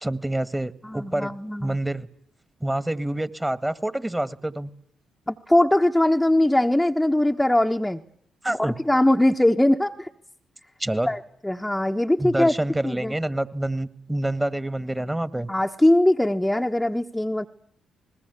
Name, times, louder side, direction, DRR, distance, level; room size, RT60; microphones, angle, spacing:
voice 1, 0.0-1.3 1.6-2.1 2.6-4.7 8.4-8.8 10.8-11.1 12.2-15.5, right 1 dB, 15° right, 16 dB, 1.8 m, -27 dB
voice 2, 0.8-1.8 5.3-8.0 8.6-10.1 11.1-12.5 12.8-13.1 15.5-17.5, left 1 dB, 10° left, 2 dB, 1.2 m, -21 dB
26.5 x 20.5 x 8.3 m, 0.64 s
hypercardioid pair, 45°, 0 cm